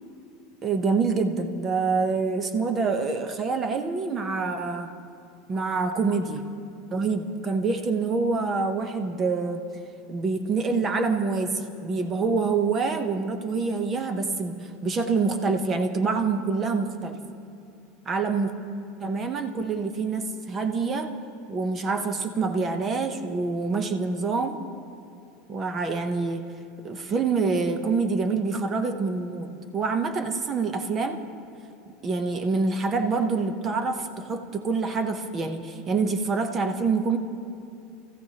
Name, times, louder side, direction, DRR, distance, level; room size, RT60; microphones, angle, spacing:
voice 1, 0.6-4.9 5.5-6.4 6.9-9.6 10.1-17.2 18.1-18.5 19.0-21.1 21.5-24.6 25.5-26.5 26.8-31.2 32.0-37.2, right 4 dB, 20° right, 7 dB, 0.8 m, -26 dB
28.5 x 15.0 x 2.9 m, 2.6 s
supercardioid pair, 175°, 0 cm